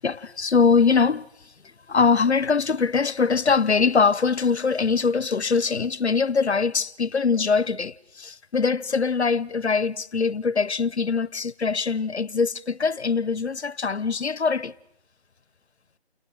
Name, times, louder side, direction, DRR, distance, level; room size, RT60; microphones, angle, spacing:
voice 1, 0.0-1.2 1.9-14.7, left 5 dB, 85° left, 1.1 m, -22 dB
29.5 x 19.0 x 7.9 m
figure-of-eight pair, 170°, 33 cm